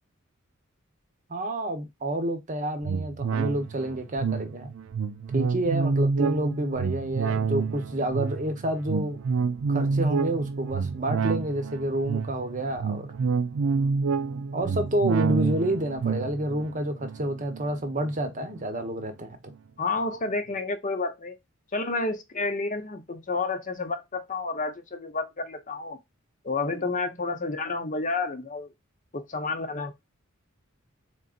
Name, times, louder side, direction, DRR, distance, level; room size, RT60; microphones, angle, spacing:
voice 1, 1.3-4.7 5.3-9.2 9.7-13.1 14.5-19.4, right 1 dB, 35° right, 0.9 m, -29 dB
sound 1, 2.8-18.6 19.0-19.1, right 5 dB, 70° right, 0.4 m, -28 dB
voice 2, 19.8-21.4 21.7-26.0 26.4-28.7 29.1-29.9, left 3 dB, 35° left, 0.7 m, -30 dB
3.9 x 3.7 x 2.4 m
head